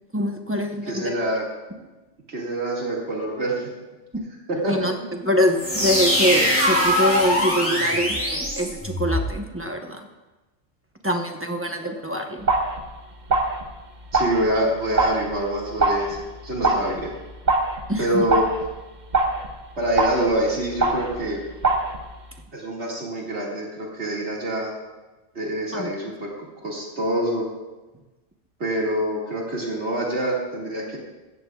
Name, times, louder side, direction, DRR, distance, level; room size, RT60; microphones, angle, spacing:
voice 1, 0.1-1.2 4.7-10.1 11.0-12.5 17.9-18.2 25.7-25.9, equal, 10° right, 2 dB, 0.9 m, -24 dB
voice 2, 0.9-1.4 1.8-1.9 2.3-3.7 4.5-4.7 14.1-17.1 18.0-18.5 19.8-21.4 22.5-24.7 25.3-26.3 26.6-27.5 28.6-31.0, right 1 dB, 65° right, -3 dB, 2.4 m, -26 dB
sound 1, 5.5-9.3, equal, 10° left, 3.2 m, -22 dB
sound 2, 12.4-22.4, right 2 dB, 40° right, 1.1 m, -25 dB
16.0 x 14.0 x 2.4 m, 1.1 s
omnidirectional pair, 1.2 m